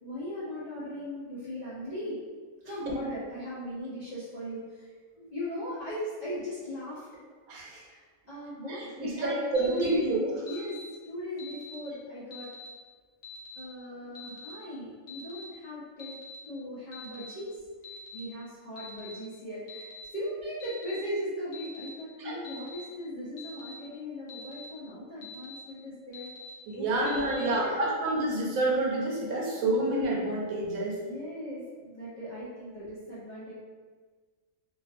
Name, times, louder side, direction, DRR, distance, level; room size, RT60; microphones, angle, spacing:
voice 1, 0.0-2.2 2.6-7.1 7.8-10.1 10.4-10.8 11.0-12.5 13.6-16.1 16.5-26.3 26.7-28.0 31.0-33.5, equal, 50° left, -11 dB, 0.5 m, -38 dB
voice 2, 7.5-7.8 8.7-10.3 22.2-22.4 26.7-31.0, right 2 dB, 85° right, -3 dB, 1.1 m, -28 dB
Alarm, 9.5-9.9 10.5-10.8 11.4-11.7 12.3-12.7 13.2-13.6 14.1-14.5 15.1-15.4 16.0-16.4 16.9-17.3 17.8-18.2 18.8-19.1 19.7-20.0 20.6-21.0 21.5-21.9 22.4-22.8 23.4-23.7 24.3-24.6 25.2-25.6 26.1-26.5 27.1-27.4, left 6 dB, 65° left, 0.9 m, -45 dB
2.4 x 2.3 x 2.4 m, 1.5 s
omnidirectional pair, 1.4 m